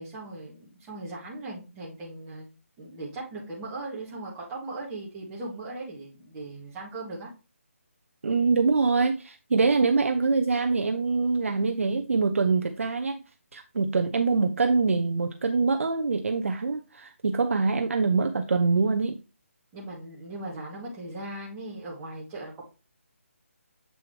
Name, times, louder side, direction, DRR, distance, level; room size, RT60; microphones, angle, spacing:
voice 1, 0.0-2.5 2.8-7.3 19.7-22.6, right 2 dB, 15° right, -6 dB, 2.0 m, -38 dB
voice 2, 8.2-13.2 13.5-19.2, right 4 dB, 65° right, 6 dB, 0.8 m, -24 dB
7.8 x 4.6 x 3.3 m, 0.30 s
hypercardioid pair, 165°, 8 cm